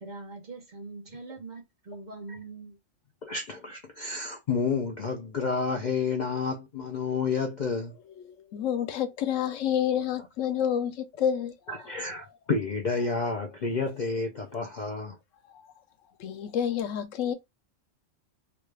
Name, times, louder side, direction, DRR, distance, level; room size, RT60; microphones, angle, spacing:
voice 1, 0.0-2.8, right 3 dB, 40° right, 0.8 m, -42 dB
voice 2, 3.2-8.0 11.7-15.2, left 4 dB, 55° left, 0.5 m, -30 dB
voice 3, 8.2-12.0 14.1-14.2 15.4-15.7 16.2-17.3, left 9 dB, 85° left, 1.0 m, -29 dB
3.1 x 2.3 x 3.2 m
omnidirectional pair, 1.3 m